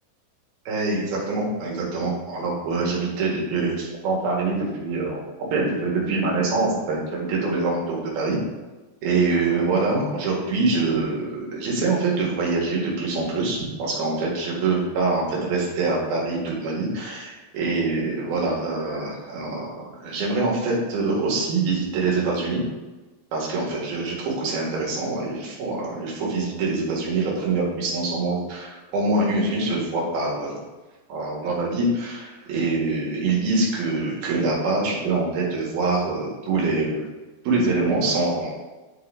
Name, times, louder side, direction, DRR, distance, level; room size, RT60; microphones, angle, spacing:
voice 1, 0.7-5.2 5.5-8.4 9.0-22.6 23.3-30.6 31.1-37.1 37.5-38.6, right 3 dB, 75° right, -3 dB, 3.5 m, -24 dB
11.0 x 3.8 x 3.9 m, 1.2 s
omnidirectional pair, 4.4 m